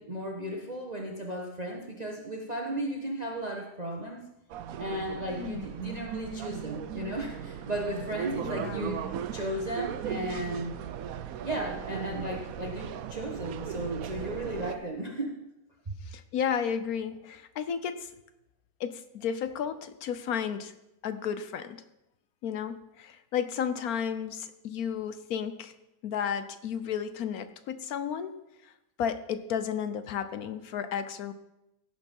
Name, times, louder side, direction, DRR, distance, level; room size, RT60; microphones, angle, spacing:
voice 1, 0.0-4.3 4.8-9.0 9.3-10.7 11.4-15.3, right 1 dB, 25° right, 0 dB, 1.2 m, -35 dB
sound 1, 4.5-14.8, right 9 dB, 65° right, 1.0 m, -37 dB
voice 2, 8.4-8.9 11.5-11.6 16.1-18.1 18.8-20.7 21.0-21.8 22.4-25.7 26.0-28.3 28.6-28.7 29.0-31.3, left 8 dB, 65° left, 12 dB, 1.2 m, -33 dB
17.0 x 6.9 x 5.5 m, 0.91 s
omnidirectional pair, 1.8 m